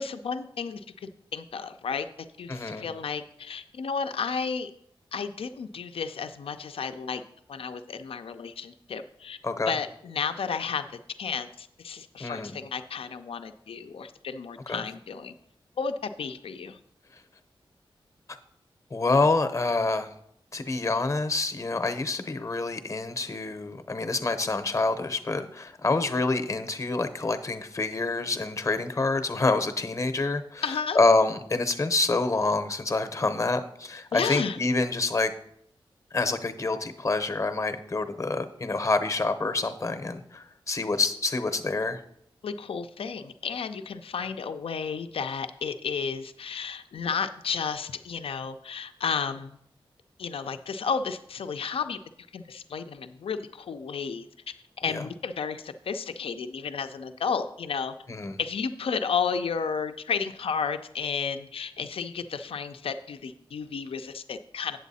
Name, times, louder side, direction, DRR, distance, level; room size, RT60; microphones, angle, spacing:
voice 1, 0.0-2.1 2.4-4.7 5.1-7.2 7.5-9.4 9.7-10.8 11.2-15.3 15.8-16.8 30.6-31.0 34.1-34.6 42.4-49.6 50.2-52.0 52.3-54.3 54.8-58.0 58.4-64.8, left 6 dB, 80° left, 8 dB, 0.5 m, -32 dB
voice 2, 2.5-2.8 9.4-9.7 12.2-12.6 14.7-14.8 18.9-20.1 20.5-30.6 30.9-35.3 36.1-42.0 54.9-55.0 58.1-58.4, left 3 dB, 35° left, 9 dB, 0.7 m, -27 dB
8.2 x 7.9 x 4.1 m, 0.71 s
wide cardioid pair, 120°, 9 cm